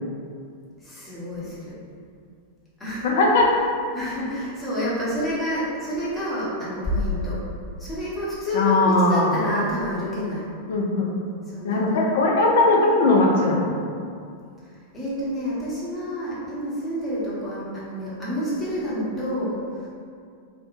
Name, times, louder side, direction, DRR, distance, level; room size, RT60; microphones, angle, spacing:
voice 1, 0.8-1.8 2.8-3.1 3.9-7.4 7.8-10.4 11.5-12.0 14.6-19.9, equal, 15° left, -9 dB, 0.9 m, -28 dB
voice 2, 3.0-3.5 8.5-9.4 10.7-11.1 11.6-13.8, left 2 dB, 55° left, -1 dB, 0.4 m, -19 dB
2.8 x 2.1 x 2.5 m, 2.3 s
figure-of-eight pair, 90°, 0 cm